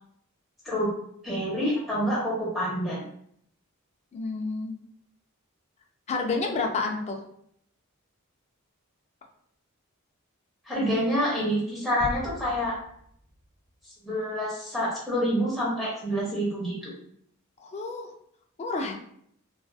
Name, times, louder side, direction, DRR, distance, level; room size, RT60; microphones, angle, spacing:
voice 1, 1.2-3.0 10.7-12.7 14.0-16.9, equal, ahead, -8 dB, 0.7 m, -27 dB
voice 2, 4.1-4.7 6.1-7.2 17.6-18.1 18.6-18.9, left 3 dB, 30° left, 2 dB, 0.3 m, -29 dB
sound 1, 12.0-13.8 14.1-14.2, equal, 70° left, 0.6 m, -40 dB
2.4 x 2.4 x 2.3 m, 0.68 s
head